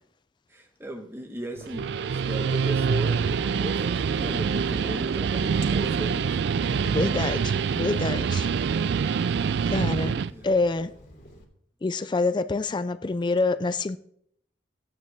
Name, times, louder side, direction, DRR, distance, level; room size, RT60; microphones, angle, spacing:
voice 1, 0.5-6.8 9.9-10.5, equal, 10° right, 1.2 m, -37 dB
Walk footsteps, 1.6-11.4, equal, 45° left, 2.6 m, -50 dB
Guitar, 1.6-10.3, right 6 dB, 60° right, 0.3 m, -25 dB
voice 2, 6.9-8.5 9.7-10.9 11.8-14.0, left 3 dB, 25° left, 0.3 m, -26 dB
15.0 x 9.3 x 3.4 m
head